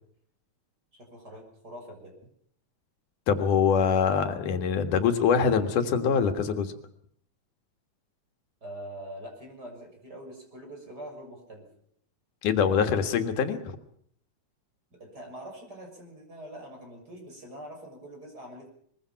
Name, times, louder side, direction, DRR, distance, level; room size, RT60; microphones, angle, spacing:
voice 1, 0.9-2.1 8.6-11.7 14.9-18.7, right 1 dB, 30° right, 2 dB, 7.0 m, -44 dB
voice 2, 3.3-6.7 12.4-13.8, left 6 dB, 90° left, 6 dB, 3.2 m, -24 dB
23.0 x 22.0 x 5.9 m, 0.65 s
omnidirectional pair, 3.5 m